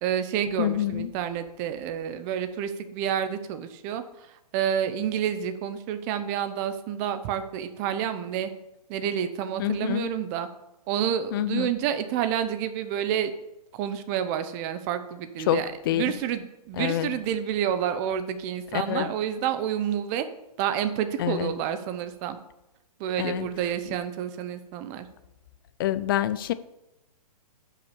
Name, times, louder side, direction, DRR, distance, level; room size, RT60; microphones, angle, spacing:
voice 1, 0.0-8.5 8.9-10.5 10.9-13.3 13.7-20.3 20.6-22.4 23.0-25.1, right 9 dB, 25° right, 10 dB, 0.8 m, -29 dB
voice 2, 0.6-1.1 9.6-10.1 11.3-11.7 15.5-16.2 16.8-17.1 18.7-19.1 21.2-21.5 23.2-23.5 23.9-24.0 25.8-26.5, left 12 dB, 35° left, 14 dB, 0.5 m, -27 dB
9.9 x 5.8 x 7.0 m, 0.92 s
hypercardioid pair, 150°, 20 cm